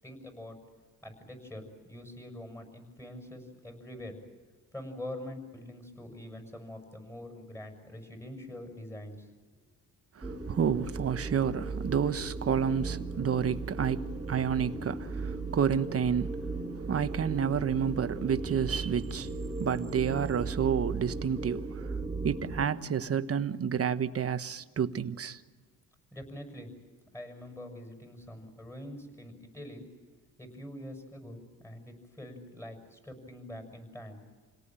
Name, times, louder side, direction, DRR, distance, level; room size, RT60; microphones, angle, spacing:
voice 1, 0.0-0.6 1.0-4.2 4.7-9.3 9.5-9.6 26.1-26.7 27.1-29.8 30.4-34.2, left 1 dB, 5° left, 6.6 m, -44 dB
voice 2, 10.1-25.4, right 7 dB, 40° right, 1.2 m, -30 dB
sound 1, 10.2-22.7, right 3 dB, 10° right, 2.6 m, -37 dB
28.5 x 18.5 x 9.0 m
cardioid pair, 115°, 36 cm